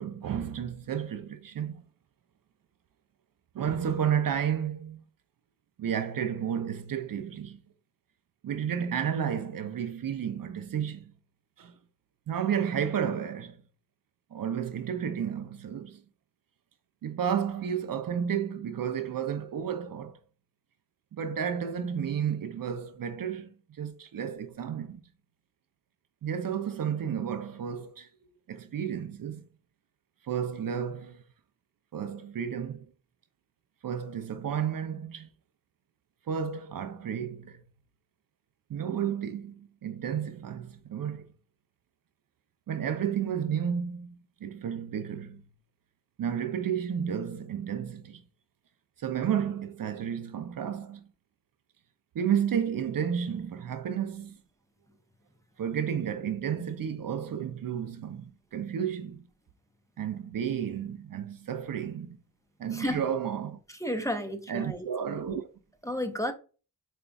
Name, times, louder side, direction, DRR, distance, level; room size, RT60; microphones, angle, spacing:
voice 1, 0.0-1.8 3.5-5.0 5.8-7.6 8.4-11.0 11.6-11.7 12.3-13.6 14.3-16.0 17.0-20.2 21.1-23.5 23.8-25.0 26.2-28.1 28.5-29.4 30.2-31.2 31.9-32.9 33.8-35.3 36.3-37.6 38.7-41.2 42.7-45.4 46.2-48.2 49.0-51.0 52.1-54.4 55.6-59.2 60.0-62.2 62.6-63.6 64.5-65.5, right 8 dB, 55° right, 0.5 m, -32 dB
voice 2, 62.7-63.0 63.7-64.9 65.8-66.3, left 1 dB, 10° left, 0.6 m, -32 dB
5.1 x 2.3 x 2.3 m
cardioid pair, 60°, 42 cm